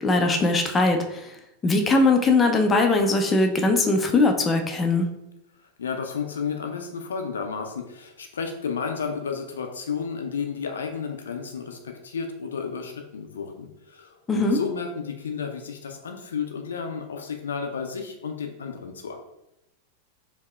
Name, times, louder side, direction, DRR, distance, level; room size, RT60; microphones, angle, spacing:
voice 1, 0.0-1.3 1.6-5.1 14.3-14.6, left 2 dB, 20° left, 3 dB, 0.5 m, -20 dB
voice 2, 5.8-19.2, left 6 dB, 70° left, 4 dB, 0.4 m, -32 dB
4.5 x 2.7 x 2.3 m, 0.85 s
figure-of-eight pair, 90°, 0 cm